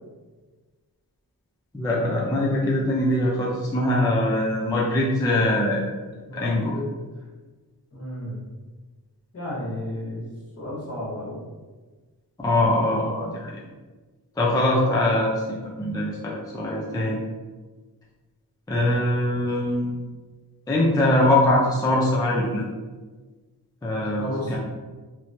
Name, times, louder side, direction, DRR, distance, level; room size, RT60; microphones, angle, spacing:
voice 1, 1.7-5.8 6.3-6.7 12.4-13.5 14.4-17.2 18.7-20.0 20.7-22.6 23.8-24.6, left 1 dB, 10° left, -4 dB, 0.4 m, -22 dB
voice 2, 6.3-6.8 7.9-8.4 9.3-10.2 10.6-11.4 24.0-24.6, left 1 dB, 35° left, -6 dB, 1.0 m, -32 dB
3.0 x 2.1 x 2.6 m, 1.3 s
wide cardioid pair, 75°, 39 cm